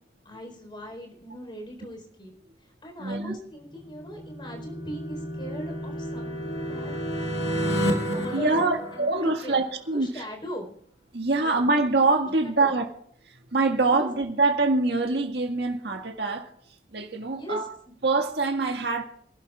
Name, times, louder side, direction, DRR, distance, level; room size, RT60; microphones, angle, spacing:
voice 1, 0.2-2.3 2.6-9.6 9.9-10.7 11.4-11.6 12.4-12.7 13.7-14.1 17.3-17.9, equal, 30° left, 4.3 m, -40 dB
voice 2, 3.0-3.4 8.3-10.2 11.1-12.9 13.3-16.5 16.9-17.7 18.0-19.0, right 3 dB, 65° right, 1.8 m, -24 dB
sound 1, 3.8-9.6, equal, 80° left, 2.3 m, -31 dB
26.5 x 11.5 x 2.4 m
head